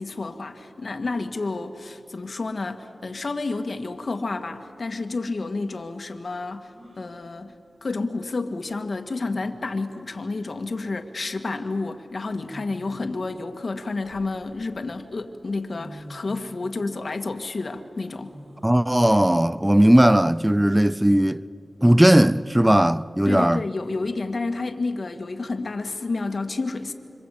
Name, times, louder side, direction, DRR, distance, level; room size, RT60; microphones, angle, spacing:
voice 1, 0.0-7.5 7.8-18.3 23.3-26.9, left 3 dB, 60° left, 2.0 m, -30 dB
sound 1, 6.7-7.2 8.7-8.8 9.2-9.7 11.0-11.2 12.3-13.1 13.7-14.7 15.4-15.5 15.7-16.5 18.2-18.8 19.3-19.4 20.1-20.6 21.9-22.5, equal, 55° right, 8.0 m, -46 dB
voice 2, 18.6-21.4 21.8-23.6, right 1 dB, 10° right, 0.6 m, -17 dB
26.5 x 25.0 x 8.5 m
cardioid pair, 55°, 0 cm